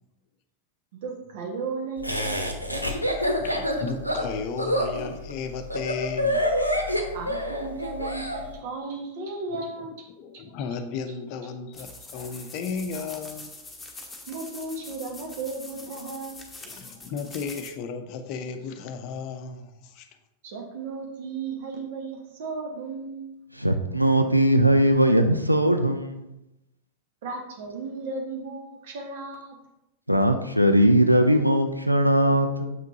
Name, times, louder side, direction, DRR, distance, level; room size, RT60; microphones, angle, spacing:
voice 1, 0.9-3.2 7.1-10.1 10.3-10.4 14.3-16.5 20.4-23.3 27.2-29.6, right 3 dB, 55° right, 1 dB, 1.5 m, -35 dB
Laughter, 2.0-8.4, equal, 90° left, 0.8 m, -27 dB
voice 2, 3.4-6.5 8.6-8.7 9.5-13.5 16.1-16.2 16.6-20.1, left 5 dB, 45° left, 8 dB, 0.6 m, -35 dB
sound 1, 11.7-17.7, left 2 dB, 10° left, 1.2 m, -43 dB
voice 3, 23.5-26.3 30.1-32.8, right 1 dB, 90° right, 7 dB, 0.5 m, -20 dB
7.4 x 5.8 x 2.8 m, 0.90 s
figure-of-eight pair, 90°, 0 cm